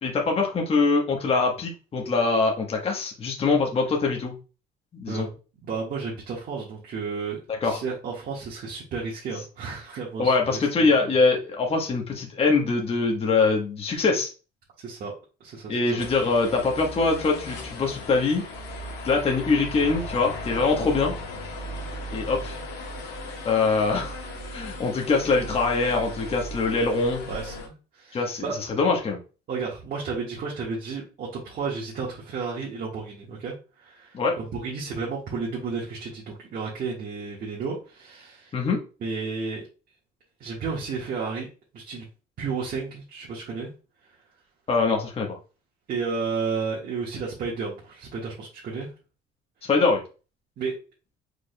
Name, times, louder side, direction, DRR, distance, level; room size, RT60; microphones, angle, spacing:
voice 1, 0.0-4.3 4.9-5.3 7.6-7.8 10.2-14.3 15.7-18.4 19.0-21.1 22.1-22.6 23.4-24.2 24.5-27.2 28.1-28.5 28.8-29.2 34.1-34.4 38.5-38.8 44.7-45.4 49.6-50.0, left 4 dB, 35° left, 1 dB, 1.2 m, -23 dB
voice 2, 5.6-11.1 14.8-15.1 15.4-16.0 21.8-22.0 27.3-28.6 29.5-38.5 39.0-39.7 40.4-41.5 41.7-42.0 42.4-43.7 45.9-48.9 50.6-50.7, right 5 dB, 55° right, -5 dB, 1.6 m, -32 dB
sound 1, 16.0-27.7, left 1 dB, 85° left, 1.4 m, -37 dB
4.9 x 4.6 x 2.2 m, 0.33 s
cardioid pair, 110°, 17 cm